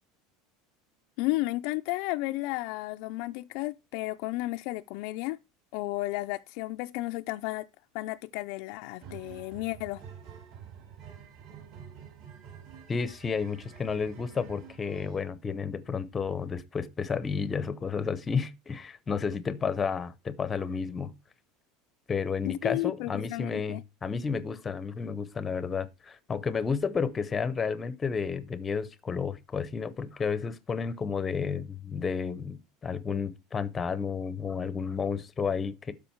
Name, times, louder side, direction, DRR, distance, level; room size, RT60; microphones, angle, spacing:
voice 1, 1.2-5.4 5.7-7.7 7.9-10.0 22.4-23.8, left 19 dB, 55° left, 0.4 m, -33 dB
sound 1, 9.0-15.3, right 7 dB, 55° right, 4.9 m, -48 dB
voice 2, 12.9-21.1 22.1-35.9, left 5 dB, 15° left, 0.7 m, -31 dB
12.5 x 5.0 x 4.5 m
supercardioid pair, 165°, 0 cm